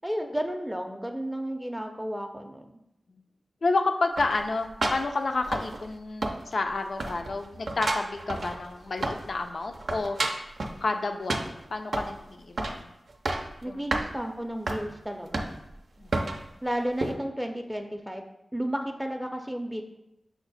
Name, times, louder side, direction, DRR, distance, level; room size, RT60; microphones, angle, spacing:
voice 1, 0.0-2.6 13.6-15.5 16.6-18.3 18.5-19.8, equal, 5° right, 3 dB, 0.5 m, -32 dB
voice 2, 3.6-10.2 10.8-12.9 13.7-13.9 16.0-16.3, left 3 dB, 75° left, 5 dB, 0.4 m, -30 dB
sound 1, 4.2-6.0 6.2-6.7 7.0-9.4 9.7-10.8 11.3-12.2 12.6-12.8 13.1-13.5 13.9-14.1 14.7-14.8 15.3-15.7 16.1-16.4 17.0-17.1, right 2 dB, 75° right, 0.5 m, -31 dB
5.8 x 2.1 x 4.0 m, 0.88 s
cardioid pair, 40°, 0 cm